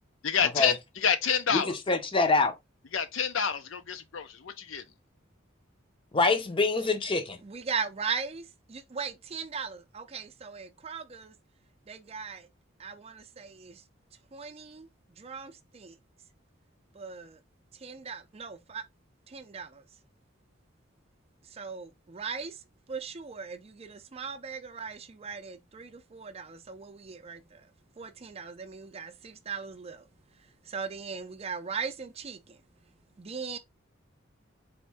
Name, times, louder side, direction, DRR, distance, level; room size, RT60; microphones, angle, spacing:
voice 1, 0.2-1.8 2.9-4.8, left 7 dB, 80° left, 0.6 m, -28 dB
voice 2, 1.9-2.6 6.1-7.4, left 3 dB, 25° left, 0.6 m, -25 dB
voice 3, 6.8-7.2 7.4-11.3 11.9-12.5 12.8-13.8 14.3-14.9 15.2-16.0 16.9-17.4 17.7-18.8 19.3-19.8 21.4-22.6 22.9-27.7 28.0-30.1 30.4-32.6 33.2-33.6, right 5 dB, 30° right, 0.5 m, -39 dB
4.2 x 2.6 x 3.3 m
head